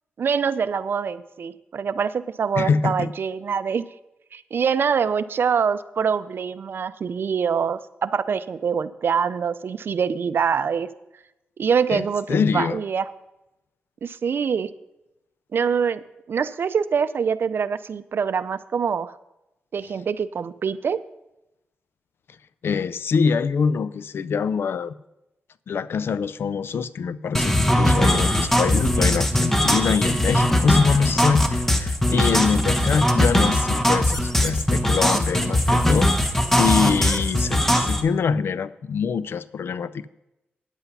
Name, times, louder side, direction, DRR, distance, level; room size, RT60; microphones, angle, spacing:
voice 1, 0.2-3.8 4.3-10.9 11.6-13.1 14.0-14.7 15.5-16.0 16.3-19.2 19.7-21.0, right 6 dB, 60° right, 14 dB, 0.5 m, -24 dB
voice 2, 2.6-3.1 11.9-12.8 22.6-25.0 25.7-36.1 36.6-40.1, left 6 dB, 70° left, 17 dB, 0.4 m, -24 dB
sound 1, 27.3-38.0, left 1 dB, 5° left, 1.1 m, -20 dB
9.8 x 8.2 x 5.5 m, 0.93 s
cardioid pair, 75°, 4 cm